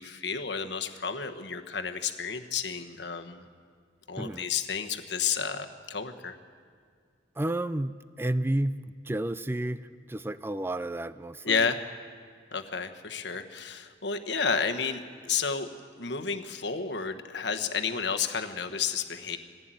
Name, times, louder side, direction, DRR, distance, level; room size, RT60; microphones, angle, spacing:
voice 1, 0.0-3.4 4.1-6.3 11.4-11.8 12.5-15.7 16.0-19.4, left 6 dB, 70° left, 6 dB, 1.3 m, -31 dB
voice 2, 4.2-4.5 7.4-11.7, right 1 dB, 10° right, 14 dB, 0.4 m, -31 dB
20.0 x 15.5 x 9.1 m, 2.1 s
head